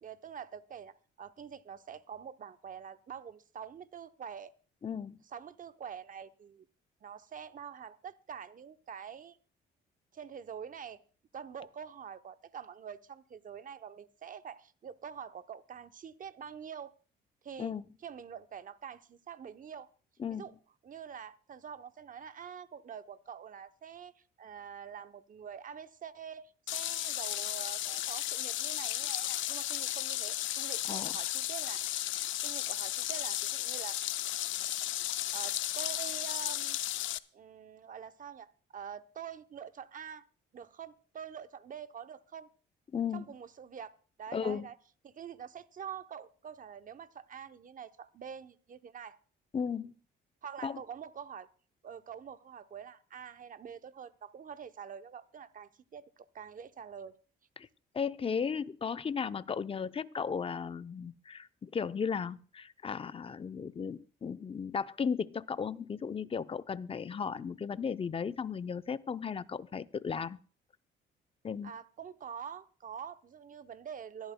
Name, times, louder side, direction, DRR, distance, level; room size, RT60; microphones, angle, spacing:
voice 1, 0.0-4.5 5.3-6.6 7.0-9.4 10.1-11.0 11.3-16.9 17.4-17.7 18.0-19.9 20.3-20.5 20.8-31.8 32.4-34.0 35.0-36.8 37.3-40.2 40.5-42.5 43.1-43.9 44.2-44.8 45.0-49.2 50.4-51.5 51.8-57.2 71.6-74.3, right 7 dB, 45° right, 0.8 m, -46 dB
voice 2, 4.8-5.2 17.6-17.8 20.2-20.5 30.9-31.1 42.9-43.3 44.3-44.7 49.5-49.9 50.6-50.8 57.6-57.7 57.9-70.4 71.4-71.7, left 6 dB, 30° left, 0.6 m, -35 dB
sound 1, 26.7-37.2, left 14 dB, 75° left, 0.5 m, -34 dB
24.5 x 11.0 x 2.2 m
cardioid pair, 90°, 20 cm